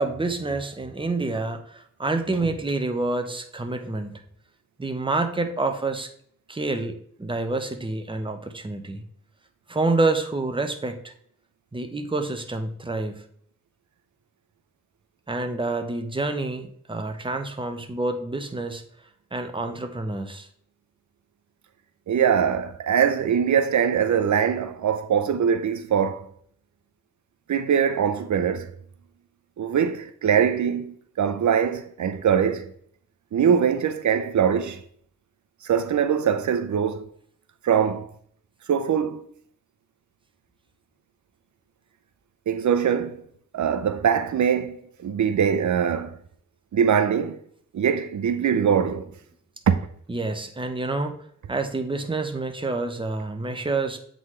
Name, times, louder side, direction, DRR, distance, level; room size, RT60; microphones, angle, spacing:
voice 1, 0.0-4.2 4.8-6.1 6.5-9.0 9.7-11.1 11.7-13.2 15.3-18.8 19.3-20.5 50.1-51.1 51.5-54.0, right 2 dB, 15° right, 0.8 m, -28 dB
voice 2, 22.1-26.3 27.5-28.7 29.6-32.7 33.3-34.8 35.6-37.0 37.6-38.1 38.7-39.2 42.5-43.2 43.5-46.2 46.7-47.4 47.7-49.1 49.7-49.8, right 8 dB, 75° right, 0.5 m, -22 dB
7.9 x 3.9 x 3.2 m
wide cardioid pair, 80°, 30 cm